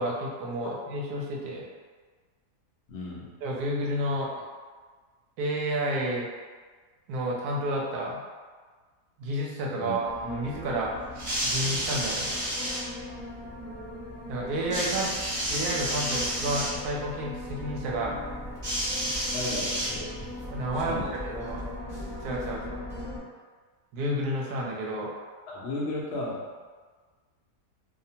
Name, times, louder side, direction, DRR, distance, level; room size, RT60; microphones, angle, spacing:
voice 1, 0.0-1.7 3.4-4.4 5.4-6.3 7.1-8.2 9.2-10.9 11.4-12.4 14.3-15.1 15.5-18.2 20.5-21.7 22.2-22.8 23.9-25.1, right 1 dB, 75° right, -2 dB, 1.0 m, -30 dB
voice 2, 2.9-3.3 9.8-10.0 19.3-20.1 20.8-21.2 25.5-26.5, left 2 dB, 65° left, -5 dB, 0.7 m, -34 dB
sound 1, 10.0-23.2, left 1 dB, 20° left, 0.8 m, -39 dB
sound 2, 11.1-12.8 14.7-16.7 18.6-20.3 21.3-21.4, equal, 35° right, 0.7 m, -30 dB
2.7 x 2.1 x 2.7 m, 1.5 s
omnidirectional pair, 1.8 m